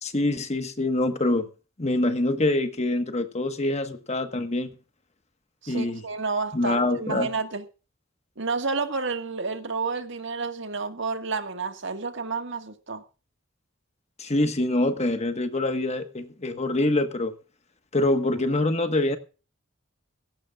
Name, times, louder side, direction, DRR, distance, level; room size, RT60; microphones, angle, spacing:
voice 1, 0.0-1.5 1.8-4.7 5.7-6.0 6.5-7.3 14.2-17.3 17.9-19.2, left 2 dB, 35° left, 1.5 m, -25 dB
voice 2, 5.6-7.6 8.4-13.0, right 4 dB, 65° right, 1.8 m, -30 dB
18.5 x 16.5 x 2.5 m
head